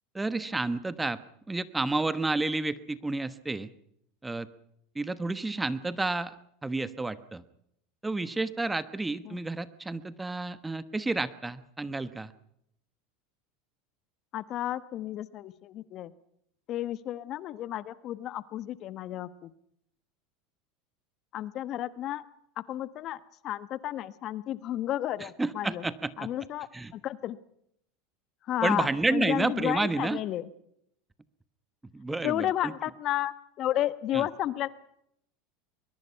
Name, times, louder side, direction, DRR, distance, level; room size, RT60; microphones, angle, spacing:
voice 1, 0.1-1.2 1.5-3.7 4.2-4.5 4.9-6.3 6.6-7.4 8.0-12.3 25.2-26.3 26.7-26.9 28.6-30.2 31.9-32.7 34.1-34.3, right 2 dB, 10° right, 14 dB, 1.2 m, -30 dB
voice 2, 14.3-16.1 16.7-19.5 21.3-22.2 22.6-25.8 26.2-26.7 26.9-27.4 28.4-30.5 32.2-34.7, left 13 dB, 50° left, 16 dB, 1.1 m, -32 dB
22.5 x 22.0 x 5.7 m, 0.74 s
supercardioid pair, 105°, 0 cm